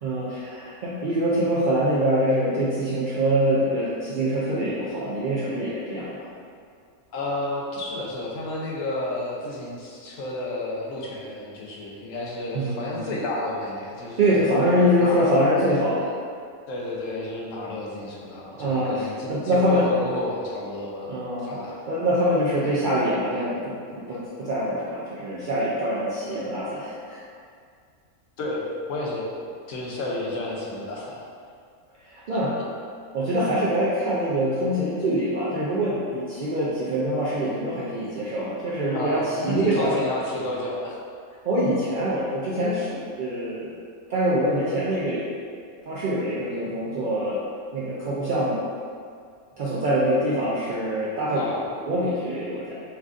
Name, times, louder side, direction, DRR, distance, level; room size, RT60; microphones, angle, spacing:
voice 1, 0.0-6.3 12.5-13.1 14.2-16.2 18.6-19.9 21.1-21.6 21.9-27.2 32.0-32.5 33.1-40.0 41.4-43.7 44.1-45.2 45.9-47.4 47.7-48.6 49.6-51.5 51.9-52.7, equal, 85° right, -8 dB, 0.4 m, -24 dB
voice 2, 7.1-14.4 15.0-15.3 16.7-21.9 28.4-29.3 29.7-31.2 32.3-32.4 38.9-41.0 51.3-51.6, left 1 dB, 75° left, -3 dB, 1.0 m, -31 dB
4.3 x 2.5 x 2.4 m, 2.2 s
omnidirectional pair, 1.4 m